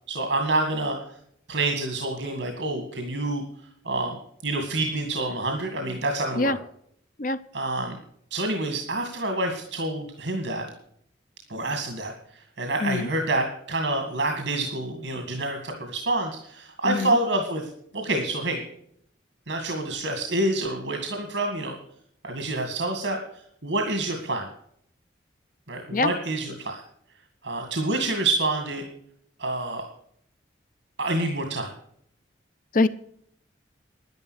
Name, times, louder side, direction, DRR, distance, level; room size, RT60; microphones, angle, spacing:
voice 1, 0.1-1.0 1.5-3.4 3.8-4.2 4.4-6.6 7.5-8.0 8.3-10.7 11.5-12.1 12.6-17.7 17.9-18.6 19.5-21.8 22.2-24.5 25.7-26.8 27.4-28.8 29.4-29.9 31.0-31.7, right 2 dB, 75° right, 4 dB, 2.1 m, -27 dB
voice 2, 16.8-17.2 25.9-26.1 32.7-32.9, left 3 dB, 45° left, 11 dB, 0.6 m, -23 dB
10.5 x 10.5 x 6.4 m, 0.67 s
head